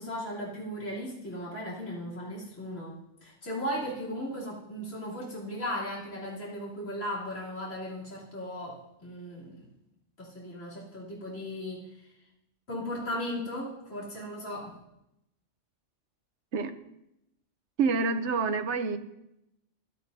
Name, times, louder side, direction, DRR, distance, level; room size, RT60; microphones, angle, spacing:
voice 1, 0.0-9.7 10.2-12.1 12.7-14.8, equal, 85° left, -5 dB, 3.7 m, -37 dB
voice 2, 17.8-19.0, right 4 dB, 70° right, 10 dB, 1.1 m, -27 dB
15.5 x 12.5 x 2.7 m, 0.86 s
omnidirectional pair, 1.3 m